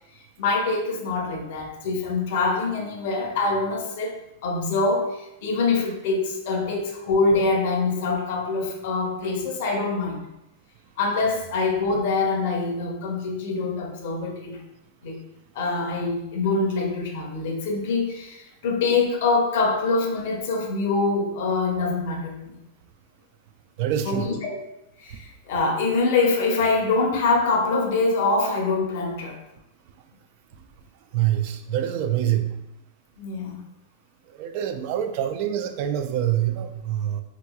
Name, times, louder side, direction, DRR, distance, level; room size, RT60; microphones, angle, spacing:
voice 1, 0.4-4.2 4.4-10.2 11.0-14.6 15.0-15.2 15.5-22.6 24.0-24.6 25.0-29.4 33.2-33.6, left 3 dB, 65° left, 2 dB, 0.7 m, -24 dB
voice 2, 23.8-24.3 31.1-32.5 34.3-37.2, right 11 dB, 55° right, 8 dB, 0.3 m, -25 dB
3.6 x 2.9 x 2.2 m, 0.88 s
hypercardioid pair, 125°, 0 cm